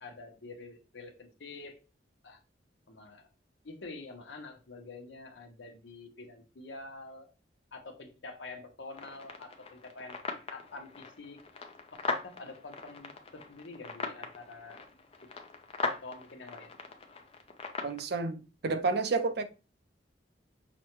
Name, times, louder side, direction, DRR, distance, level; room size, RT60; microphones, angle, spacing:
voice 1, 0.0-1.8 2.2-2.4 2.9-3.3 3.6-7.3 7.7-11.4 11.9-14.8 15.9-16.7, left 3 dB, 80° left, 0.8 m, -47 dB
sound 1, 8.9-18.0, left 4 dB, 35° left, 0.5 m, -40 dB
voice 2, 17.8-19.4, right 3 dB, 60° right, 0.5 m, -30 dB
6.0 x 2.2 x 3.0 m
head